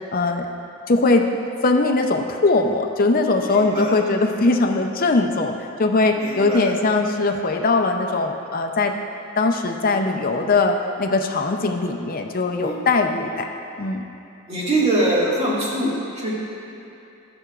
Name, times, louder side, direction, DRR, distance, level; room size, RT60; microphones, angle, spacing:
voice 1, 0.1-0.5 0.9-1.2 1.6-8.9 9.4-13.5 13.8-14.0, left 3 dB, 40° left, 4 dB, 0.6 m, -20 dB
voice 2, 3.4-3.9 6.2-6.7 12.6-12.8 14.5-16.3, right 1 dB, 30° right, -7 dB, 2.0 m, -23 dB
13.0 x 9.8 x 2.5 m, 2.8 s
head